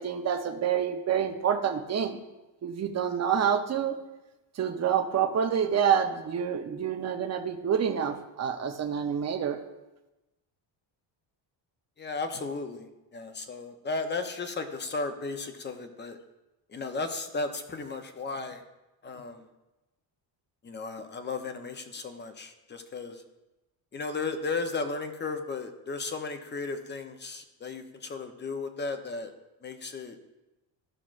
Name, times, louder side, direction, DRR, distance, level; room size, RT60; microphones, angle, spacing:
voice 1, 0.0-2.2 2.6-4.0 4.5-9.6, right 8 dB, 35° right, 5 dB, 0.7 m, -27 dB
voice 2, 12.0-12.9 13.1-16.2 16.7-18.6 19.0-19.4 20.6-23.2 23.9-29.3 29.6-30.2, left 3 dB, 25° left, 7 dB, 0.7 m, -35 dB
14.5 x 5.9 x 2.5 m, 1.0 s
cardioid pair, 140°, 46 cm